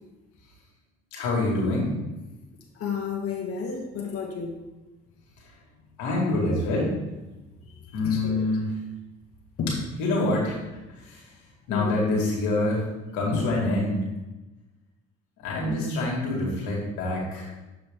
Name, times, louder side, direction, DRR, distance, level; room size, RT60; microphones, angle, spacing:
voice 1, 1.1-1.9 6.0-6.9 7.9-8.7 10.0-10.6 11.1-11.2 11.7-12.8 13.1-14.0 15.4-17.5, left 2 dB, 85° left, -3 dB, 2.0 m, -26 dB
voice 2, 2.8-4.5 8.0-8.4 9.6-9.7 11.7-12.0, left 6 dB, 50° left, -2 dB, 1.4 m, -31 dB
7.2 x 4.8 x 3.6 m, 1.1 s
supercardioid pair, 70°, 29 cm